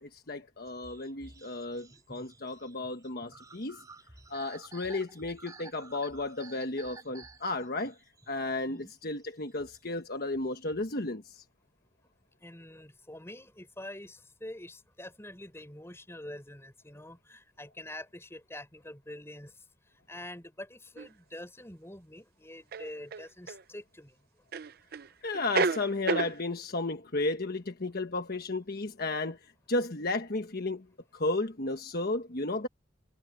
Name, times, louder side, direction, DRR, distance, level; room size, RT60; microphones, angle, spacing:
voice 1, 0.0-3.8 4.3-8.0 8.3-11.4 25.2-30.8 31.1-32.7, left 2 dB, 55° left, 1.3 m, -33 dB
sound 1, 0.7-11.1, right 3 dB, 20° right, 2.9 m, -53 dB
voice 2, 12.4-24.2, left 1 dB, 15° left, 5.8 m, -46 dB
sound 2, 21.0-21.1 22.7-23.6 24.5-25.1 25.3-26.4, right 4 dB, 55° right, 0.6 m, -30 dB
head